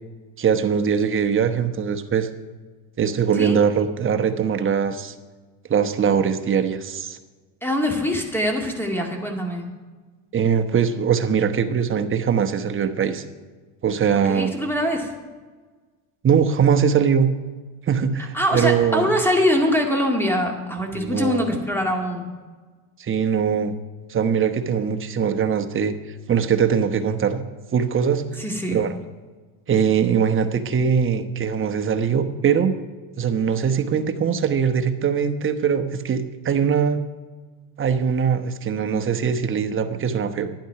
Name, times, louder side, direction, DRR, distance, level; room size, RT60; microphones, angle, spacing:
voice 1, 0.4-2.3 3.0-5.1 5.7-7.2 10.3-13.2 13.8-14.5 16.2-17.3 17.9-19.1 20.9-21.6 23.0-23.7 24.1-25.9 26.3-27.4 27.7-28.3 28.7-28.9 29.7-32.7 33.2-37.0 37.8-40.5, right 7 dB, 30° right, 7 dB, 1.0 m, -21 dB
voice 2, 7.6-9.7 14.2-15.1 18.3-22.3 28.4-28.8, equal, 5° left, 2 dB, 2.1 m, -23 dB
11.5 x 9.4 x 5.8 m, 1.4 s
cardioid pair, 115°, 44 cm